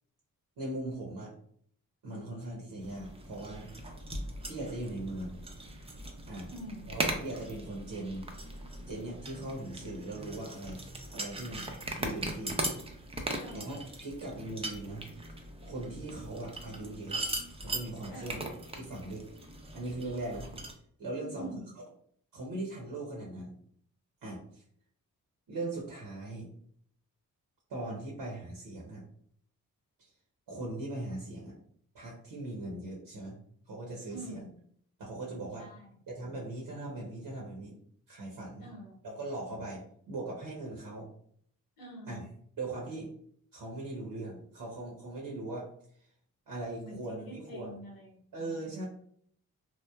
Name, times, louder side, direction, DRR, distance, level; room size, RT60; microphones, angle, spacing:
voice 1, 0.6-1.3 2.0-3.7 4.4-5.4 6.3-6.5 6.9-8.3 8.9-10.8 11.1-11.7 12.0-12.6 13.5-15.0 15.6-17.2 17.6-18.4 18.8-19.2 19.7-20.5 21.0-21.5 22.3-23.5 24.2-24.6 25.5-26.5 27.7-29.0 30.0-30.1 30.5-31.5 31.9-33.4 33.7-34.4 35.0-35.7 36.1-37.8 38.1-38.7 39.0-41.1 42.1-42.2 42.6-43.1 43.5-45.7 46.5-47.7 48.3-48.8, right 2 dB, 70° right, -3 dB, 0.8 m, -39 dB
sound 1, 2.8-20.7, right 2 dB, 15° right, 0.5 m, -40 dB
voice 2, 6.5-6.9 13.4-13.7 18.1-18.6 21.2-21.7 34.1-34.5 35.6-36.0 38.6-39.0 41.8-42.2 46.8-48.2 48.6-48.8, right 1 dB, 70° left, -1 dB, 0.9 m, -45 dB
3.0 x 2.0 x 2.2 m, 0.63 s
supercardioid pair, 50°, 37 cm